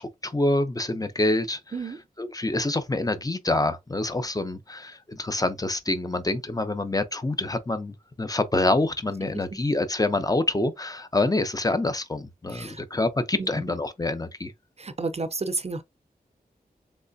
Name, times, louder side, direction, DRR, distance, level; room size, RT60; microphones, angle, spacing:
voice 1, 0.0-1.6 2.2-14.5, left 2 dB, 25° left, 0.7 m, -26 dB
voice 2, 12.5-12.8 13.4-13.7 14.8-15.8, right 3 dB, 45° right, 0.5 m, -32 dB
3.4 x 3.2 x 2.6 m
wide cardioid pair, 60°, 16 cm